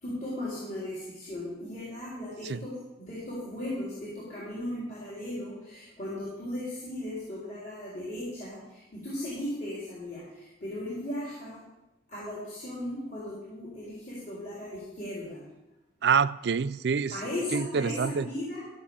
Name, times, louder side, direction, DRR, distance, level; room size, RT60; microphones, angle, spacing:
voice 1, 0.0-2.7 3.0-10.2 10.6-11.6 12.1-15.4 17.1-18.8, left 1 dB, 45° left, 4.0 m, -37 dB
voice 2, 16.0-17.2 17.5-18.3, right 6 dB, 65° right, 0.4 m, -26 dB
14.5 x 6.4 x 7.2 m
head